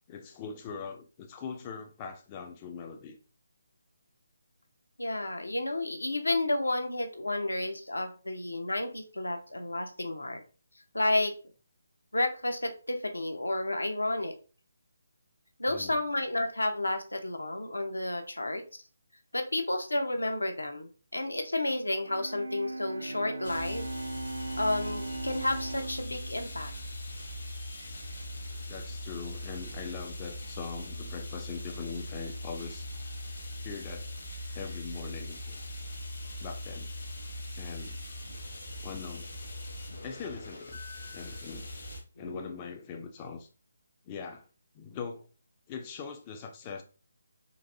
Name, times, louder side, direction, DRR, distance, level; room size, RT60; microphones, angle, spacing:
voice 1, 0.1-3.2 15.7-16.0 28.7-32.9 33.6-34.1 34.5-35.6 36.4-36.9 37.6-38.0 38.8-39.3 40.0-40.8 41.1-41.7 42.2-43.5 44.0-44.4 44.7-45.3 45.7-46.8, left 6 dB, 25° left, 0.4 m, -41 dB
voice 2, 5.0-10.4 10.9-11.3 12.1-14.3 15.6-18.6 19.3-23.9 24.6-26.7 42.2-42.5, left 1 dB, 80° left, 0.7 m, -31 dB
Bowed string instrument, 22.0-28.0, right 2 dB, 70° right, 0.4 m, -39 dB
sound 1, 23.4-42.0, left 1 dB, 60° left, 1.0 m, -41 dB
4.0 x 2.5 x 2.6 m
figure-of-eight pair, 145°, 0 cm